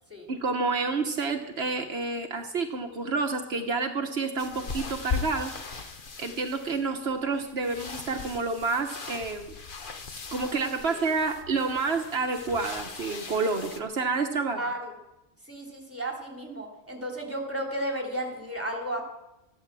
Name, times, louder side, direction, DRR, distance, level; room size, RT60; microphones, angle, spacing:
voice 1, 0.3-5.9 6.2-9.5 10.3-14.7, right 4 dB, 75° right, 4 dB, 1.4 m, -29 dB
sound 1, 4.4-13.8, left 5 dB, 55° left, 1.3 m, -39 dB
voice 2, 14.6-14.9 15.5-19.0, right 1 dB, 15° right, 0 dB, 3.4 m, -33 dB
14.0 x 11.5 x 7.5 m, 0.92 s
omnidirectional pair, 1.1 m